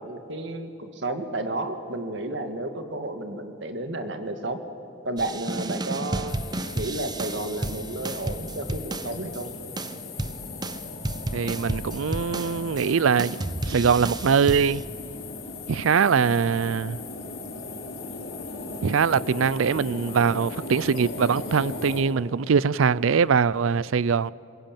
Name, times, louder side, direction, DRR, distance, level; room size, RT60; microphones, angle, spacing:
voice 1, 0.0-4.6 5.0-6.4 6.7-9.5, right 2 dB, 65° right, 2.0 m, -32 dB
sound 1, 5.2-9.4 9.8-12.9 13.2-14.8, right 2 dB, 20° right, 0.7 m, -32 dB
sound 2, 6.3-22.0, left 3 dB, 85° left, 4.5 m, -38 dB
voice 2, 11.3-14.8 15.7-17.0 18.8-24.3, right 6 dB, 85° right, 0.5 m, -22 dB
23.0 x 21.0 x 9.0 m
head